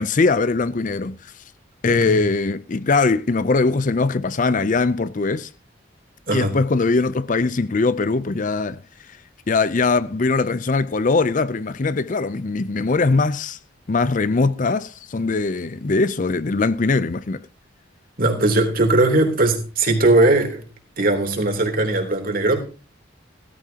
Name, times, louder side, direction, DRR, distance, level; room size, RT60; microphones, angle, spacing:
voice 1, 0.0-1.3 1.8-5.5 6.3-8.8 9.5-13.6 13.9-17.4, left 3 dB, 40° left, 0.5 m, -21 dB
voice 2, 18.2-20.6 21.0-22.6, right 2 dB, 50° right, 3.3 m, -19 dB
17.0 x 14.0 x 2.9 m
head